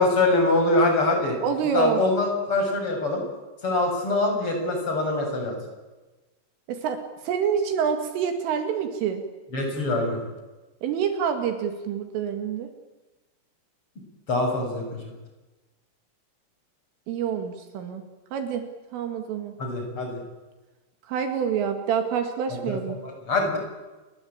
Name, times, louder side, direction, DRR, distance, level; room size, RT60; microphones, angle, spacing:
voice 1, 0.0-1.4 1.7-3.2 3.6-5.6 9.5-10.2 14.3-15.1 19.6-20.2 22.7-23.6, left 2 dB, 25° left, 3 dB, 7.5 m, -24 dB
voice 2, 1.4-2.0 6.7-7.0 7.3-9.2 10.8-12.7 17.1-18.0 18.3-18.6 18.9-19.5 21.1-23.0, right 7 dB, 75° right, 6 dB, 4.6 m, -27 dB
30.0 x 22.5 x 8.8 m, 1.2 s
omnidirectional pair, 5.9 m